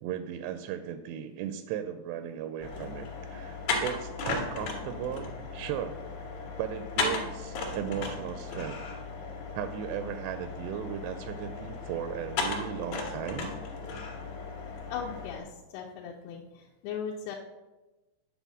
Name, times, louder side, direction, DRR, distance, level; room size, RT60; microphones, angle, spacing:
voice 1, 0.0-6.0 6.6-8.8 9.5-13.5, right 9 dB, 85° right, 9 dB, 2.6 m, -36 dB
sound 1, 2.6-15.4, left 3 dB, 60° left, 2.2 m, -36 dB
voice 2, 14.9-17.4, left 7 dB, 80° left, 0 dB, 2.6 m, -38 dB
9.1 x 4.1 x 6.1 m, 1.1 s
omnidirectional pair, 4.8 m